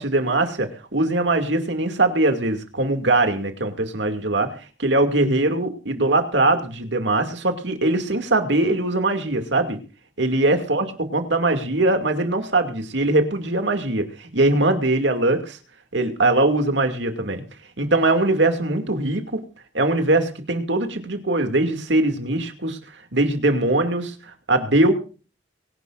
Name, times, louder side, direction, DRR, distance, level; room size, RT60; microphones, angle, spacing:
voice 1, 0.0-4.5 4.8-9.8 10.2-10.9 11.1-15.6 15.9-17.4 17.8-19.4 19.7-22.8 23.1-24.9, right 2 dB, 70° right, 6 dB, 2.5 m, -21 dB
24.0 x 11.5 x 2.6 m, 0.37 s
head